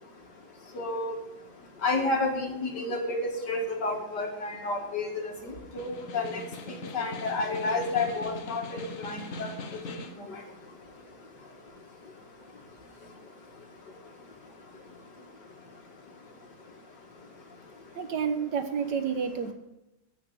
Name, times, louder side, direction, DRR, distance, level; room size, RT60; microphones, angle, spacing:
voice 1, 0.8-1.1 1.8-5.9 6.1-9.5, left 3 dB, 80° left, 2 dB, 2.6 m, -30 dB
Snare drum, 5.6-10.3, left 2 dB, 55° left, 1.3 m, -41 dB
voice 2, 18.0-19.5, right 6 dB, 85° right, 8 dB, 1.8 m, -29 dB
16.5 x 5.9 x 7.0 m, 0.89 s
omnidirectional pair, 1.8 m